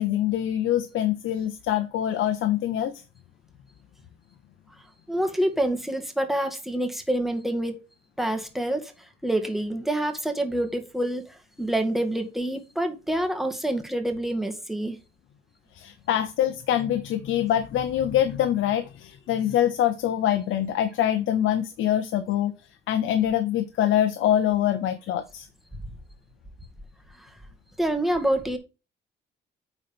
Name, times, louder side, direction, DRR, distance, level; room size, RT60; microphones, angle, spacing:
voice 1, 0.0-2.9 15.7-22.5 22.9-25.5, left 11 dB, 80° left, 0.8 m, -24 dB
voice 2, 5.1-7.8 8.2-8.9 9.2-15.0 27.2-27.3 27.8-28.6, right 1 dB, ahead, 1.9 m, -27 dB
9.4 x 4.1 x 5.2 m
cardioid pair, 90°, 20 cm